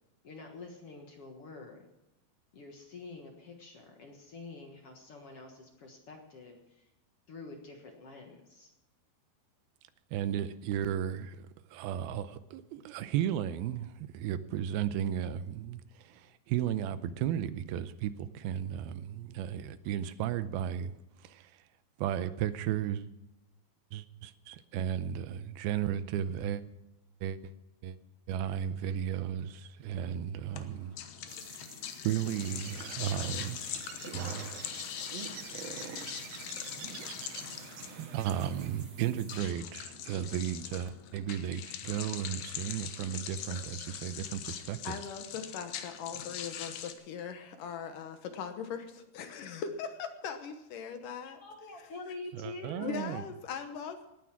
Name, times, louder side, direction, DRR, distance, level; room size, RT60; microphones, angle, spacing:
voice 1, 0.2-1.9 2.5-6.9 7.3-8.7 51.0-51.1 51.4-53.0, left 3 dB, 50° left, 1.9 m, -46 dB
voice 2, 10.1-11.5 11.7-20.9 21.2-21.5 22.0-23.1 23.9-26.6 27.2-27.5 27.8-28.0 28.3-30.9 32.0-33.6 34.1-34.5 37.9-45.0 52.3-53.2, right 10 dB, 85° right, 2.6 m, -34 dB
sound 1, 30.5-46.9, left 9 dB, 85° left, 3.1 m, -42 dB
sound 2, 31.3-39.4, right 4 dB, 40° right, 3.2 m, -55 dB
Bird, 32.2-38.9, right 6 dB, 60° right, 1.8 m, -45 dB
voice 3, 44.8-51.4 52.8-54.1, left 6 dB, 70° left, 2.5 m, -40 dB
18.5 x 9.5 x 6.0 m
omnidirectional pair, 4.3 m